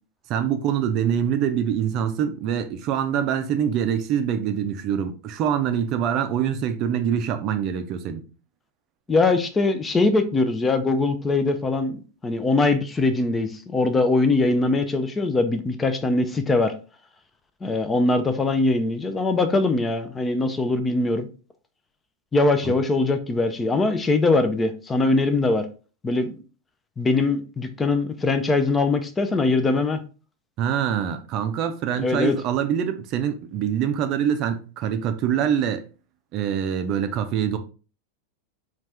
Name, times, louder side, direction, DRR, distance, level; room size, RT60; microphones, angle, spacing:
voice 1, 0.3-8.2 22.6-22.8 30.6-35.8 36.3-37.6, right 9 dB, 40° right, 0.5 m, -24 dB
voice 2, 9.1-16.7 17.6-21.3 22.3-25.7 26.0-26.4 27.0-30.0 32.0-32.4, left 3 dB, 15° left, 0.4 m, -22 dB
4.1 x 2.5 x 3.3 m
figure-of-eight pair, 90°, 0 cm